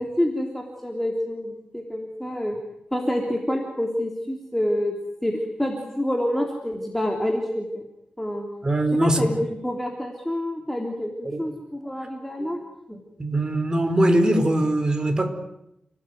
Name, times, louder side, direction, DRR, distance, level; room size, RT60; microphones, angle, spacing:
voice 1, 0.0-2.6 2.9-4.9 5.2-7.8 8.2-8.5 9.0-12.6 12.9-13.0, left 1 dB, 5° left, 1 dB, 3.4 m, -27 dB
voice 2, 8.6-9.3 11.2-11.4 12.4-12.5 13.2-15.3, right 1 dB, 25° right, 6 dB, 4.6 m, -21 dB
29.5 x 18.5 x 9.5 m, 0.83 s
wide cardioid pair, 130°, 3 cm